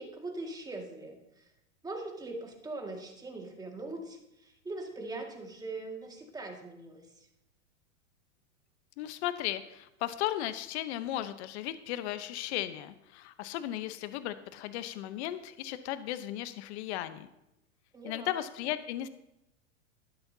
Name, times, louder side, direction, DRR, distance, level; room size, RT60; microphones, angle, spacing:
voice 1, 0.0-1.5 1.8-7.3 17.9-18.3, right 2 dB, 10° right, 1 dB, 2.0 m, -41 dB
voice 2, 9.0-17.3 18.0-19.1, left 13 dB, 55° left, 12 dB, 0.9 m, -36 dB
12.0 x 11.5 x 2.8 m, 0.87 s
hypercardioid pair, 120°, 39 cm